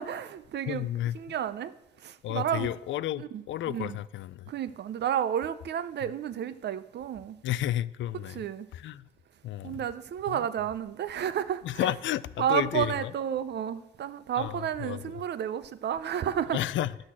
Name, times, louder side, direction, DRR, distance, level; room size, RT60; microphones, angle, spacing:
voice 1, 0.0-0.9 1.1-1.7 2.0-2.7 3.2-4.0 4.5-7.4 8.3-8.7 9.6-11.9 12.4-16.6, right 9 dB, 60° right, 0.7 m, -31 dB
voice 2, 0.7-1.2 2.2-4.5 7.4-8.4 8.7-9.0 9.4-9.8 10.3-10.5 11.6-13.1 14.4-15.2 16.5-17.0, left 13 dB, 70° left, 0.5 m, -32 dB
9.8 x 6.4 x 7.3 m
cardioid pair, 90°, 20 cm